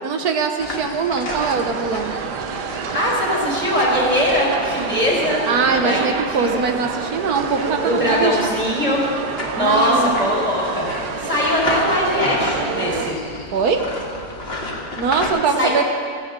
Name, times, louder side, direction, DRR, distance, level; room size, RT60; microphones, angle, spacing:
voice 1, 0.0-2.1 5.5-8.4 9.6-10.2 13.5-13.8 15.0-15.8, right 5 dB, 70° right, 5 dB, 1.5 m, -21 dB
sound 1, 0.6-15.3, left 1 dB, 40° left, 1.9 m, -32 dB
sound 2, 1.3-13.1, right 6 dB, 85° right, 1.4 m, -29 dB
voice 2, 2.9-5.4 5.8-6.5 7.8-9.0 9.5-13.1 15.6-15.7, equal, 5° right, -6 dB, 4.3 m, -21 dB
16.5 x 15.5 x 3.8 m, 2.3 s
omnidirectional pair, 1.7 m